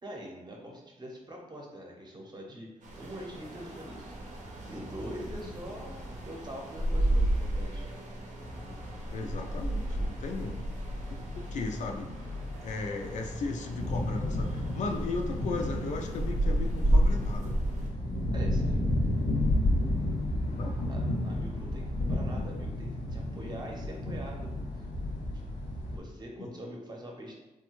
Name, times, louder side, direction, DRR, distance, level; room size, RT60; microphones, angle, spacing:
voice 1, 0.0-2.7 3.0-4.2 4.7-7.9 18.3-18.8 20.9-24.8 25.9-27.4, equal, 35° right, -1 dB, 0.7 m, -44 dB
sound 1, 2.8-17.9, right 1 dB, 70° right, 0.6 m, -32 dB
sound 2, 3.5-9.8, equal, ahead, 0.6 m, -50 dB
sound 3, 8.4-26.0, left 1 dB, 80° left, 0.9 m, -33 dB
voice 2, 9.1-10.7 11.1-11.2 11.5-12.1 12.6-17.6 20.5-20.8 26.4-26.5, left 3 dB, 65° left, 4 dB, 0.4 m, -36 dB
3.2 x 2.2 x 3.0 m, 1.0 s
cardioid pair, 95°, 13 cm